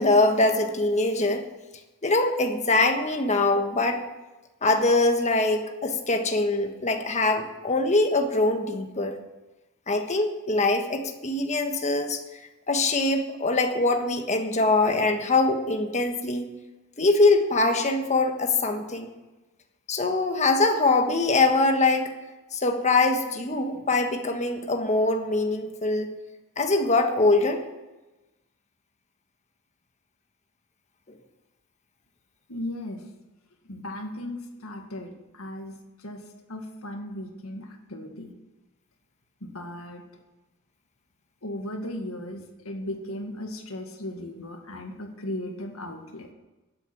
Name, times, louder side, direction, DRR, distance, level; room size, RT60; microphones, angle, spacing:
voice 1, 0.0-1.5 2.0-4.1 4.6-9.2 9.9-12.2 12.7-16.5 17.0-19.1 19.9-22.1 22.5-26.1 26.6-27.6, left 2 dB, 30° left, 5 dB, 1.4 m, -23 dB
voice 2, 32.5-33.0 33.7-38.3 39.4-40.0 41.4-46.3, left 1 dB, 70° left, 4 dB, 2.0 m, -36 dB
12.0 x 8.4 x 7.8 m, 1.1 s
head